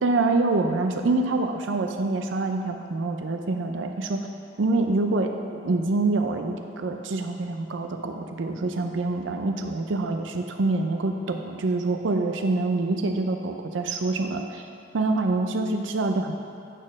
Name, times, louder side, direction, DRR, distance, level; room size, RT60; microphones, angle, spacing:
voice 1, 0.0-4.2 4.6-5.3 5.6-14.7 14.9-16.3, right 2 dB, 75° right, 5 dB, 0.5 m, -26 dB
9.0 x 4.3 x 6.3 m, 2.8 s
head